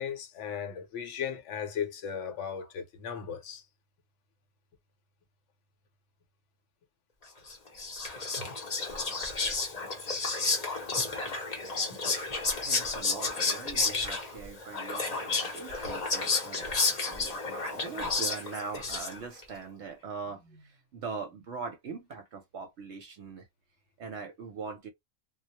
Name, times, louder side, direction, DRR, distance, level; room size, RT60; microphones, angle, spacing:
voice 1, 0.0-3.6, left 8 dB, 65° left, 0.9 m, -36 dB
Whispering, 7.5-19.4, left 3 dB, 35° left, 0.7 m, -31 dB
voice 2, 12.6-16.7 17.1-17.4 17.7-23.5 24.0-24.9, right 5 dB, 65° right, 0.8 m, -41 dB
2.3 x 2.0 x 2.8 m
omnidirectional pair, 1.4 m